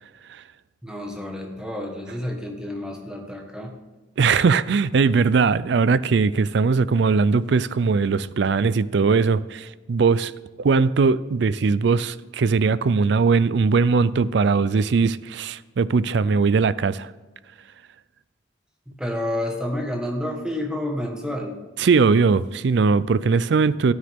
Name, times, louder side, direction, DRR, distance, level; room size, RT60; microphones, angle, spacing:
voice 1, 0.8-3.7 19.0-21.6, left 1 dB, 5° right, 1.4 m, -29 dB
voice 2, 4.2-10.3 10.6-17.1 21.8-23.9, right 4 dB, 65° right, 0.4 m, -20 dB
13.0 x 9.6 x 3.6 m
head